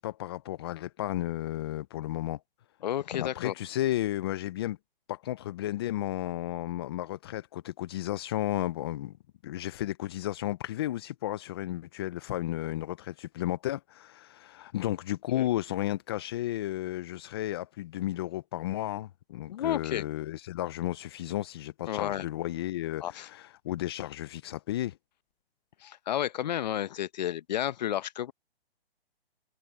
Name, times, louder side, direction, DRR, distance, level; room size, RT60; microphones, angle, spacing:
voice 1, 0.0-2.4 3.2-4.8 5.1-9.2 9.4-25.0, left 14 dB, 25° left, 0.5 m, -33 dB
voice 2, 2.8-3.5 15.3-15.4 19.5-20.0 21.9-22.3 23.0-23.3 25.8-28.3, left 11 dB, 45° left, 0.8 m, -31 dB
hypercardioid pair, 150°, 31 cm